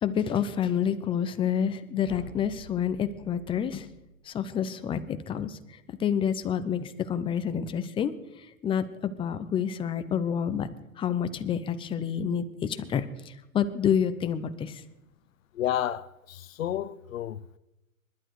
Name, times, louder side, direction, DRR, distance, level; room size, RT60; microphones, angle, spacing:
voice 1, 0.0-3.9 4.2-5.6 6.0-10.7 11.0-14.8, left 8 dB, 15° left, 0.7 m, -28 dB
sound 1, 2.0-4.1, right 1 dB, 10° right, 4.6 m, -49 dB
voice 2, 15.5-17.6, left 11 dB, 75° left, 0.8 m, -31 dB
25.0 x 11.5 x 4.8 m
hypercardioid pair, 135°, 40 cm